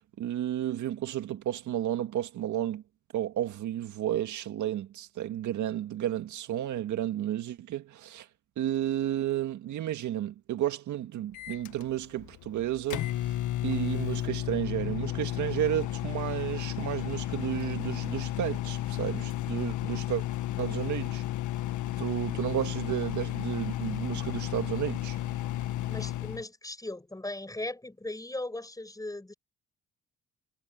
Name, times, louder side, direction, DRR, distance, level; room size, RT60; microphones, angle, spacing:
voice 1, 0.0-2.8 3.1-8.3 8.6-13.4 13.6-20.2 20.6-21.2 22.0-25.2, right 12 dB, 75° right, 1.9 m, -32 dB
Microwave oven, 11.3-26.4, left 14 dB, 80° left, 1.7 m, -33 dB
voice 2, 25.9-29.3, left 2 dB, 10° left, 6.1 m, -38 dB
cardioid pair, 90°, 30 cm